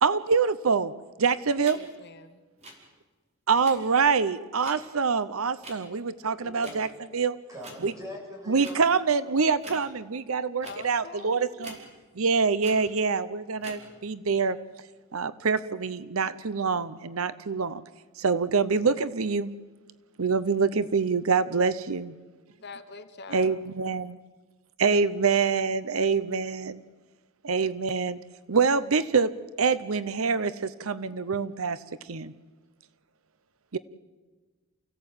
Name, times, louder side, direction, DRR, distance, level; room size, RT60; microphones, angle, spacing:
voice 1, 0.0-0.9 1.2-1.8 3.5-6.9 7.1-7.4 7.8-7.9 8.5-11.8 12.2-14.6 15.1-17.8 18.2-19.5 20.2-22.1 23.3-24.2 24.8-26.8 27.4-28.2 28.5-31.8 32.1-32.3 33.7-33.8, right 5 dB, 90° right, 15 dB, 0.8 m, -25 dB
sound 1, 1.6-1.8 2.6-2.7 3.6-3.8 4.6-4.7 5.6-5.7 6.6-6.8 7.6-7.8 8.6-8.7 9.6-9.8 10.6-10.8 11.6-11.8 12.6-12.8 13.6-13.8, right 1 dB, 30° right, 4.9 m, -43 dB
voice 2, 1.7-2.4 10.6-11.7 22.6-23.6, left 4 dB, 50° left, 9 dB, 1.2 m, -44 dB
voice 3, 6.4-6.8 7.5-8.8, left 1 dB, 15° right, -1 dB, 7.7 m, -42 dB
29.5 x 16.5 x 8.9 m, 1.3 s
head